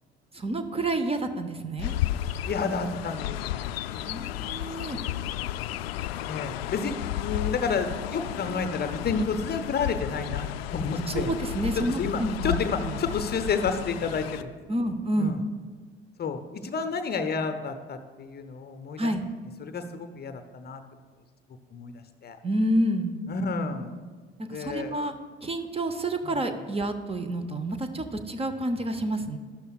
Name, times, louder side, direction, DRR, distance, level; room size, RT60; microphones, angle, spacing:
voice 1, 0.3-2.0 3.9-5.0 11.1-13.0 14.7-15.4 19.0-19.2 22.4-23.2 24.4-25.1 25.4-29.4, right 1 dB, 20° right, 8 dB, 0.8 m, -29 dB
Chirp tweet, 1.8-14.4, left 13 dB, 70° left, 0.5 m, -33 dB
voice 2, 2.4-3.7 6.3-11.3 11.9-14.5 15.2-15.4 16.2-19.1 19.6-20.8 21.7-22.4 23.3-23.9 24.5-25.1 26.2-26.4, left 5 dB, 30° left, 9 dB, 0.7 m, -30 dB
13.0 x 12.0 x 2.4 m, 1.5 s
figure-of-eight pair, 55°, 31 cm